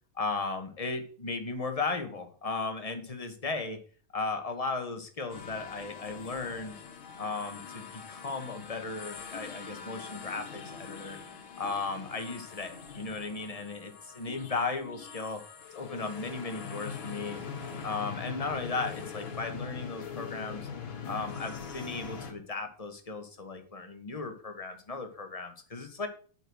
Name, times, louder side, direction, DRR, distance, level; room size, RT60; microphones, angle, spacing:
voice 1, 0.1-3.8 4.1-6.7 7.2-11.2 11.6-15.4 15.7-17.4 17.8-20.7 21.0-26.1, left 3 dB, 20° left, 6 dB, 1.1 m, -36 dB
sound 1, 5.3-22.3, left 6 dB, 65° left, 2.2 m, -42 dB
9.0 x 6.2 x 6.3 m, 0.42 s
omnidirectional pair, 2.4 m